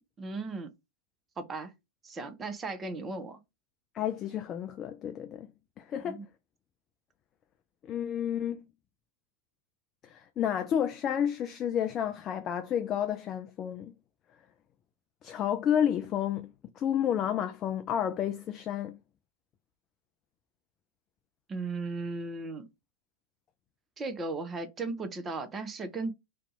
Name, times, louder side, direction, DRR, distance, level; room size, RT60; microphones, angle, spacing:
voice 1, 0.2-0.7 1.4-1.7 2.0-3.4 6.0-6.3 21.5-22.7 24.0-26.1, right 3 dB, 20° right, 0.6 m, -36 dB
voice 2, 3.9-5.5 5.8-6.2 7.8-8.6 10.0-13.9 15.2-19.0, left 9 dB, 30° left, 0.3 m, -31 dB
2.6 x 2.3 x 4.1 m
figure-of-eight pair, 90°, 0 cm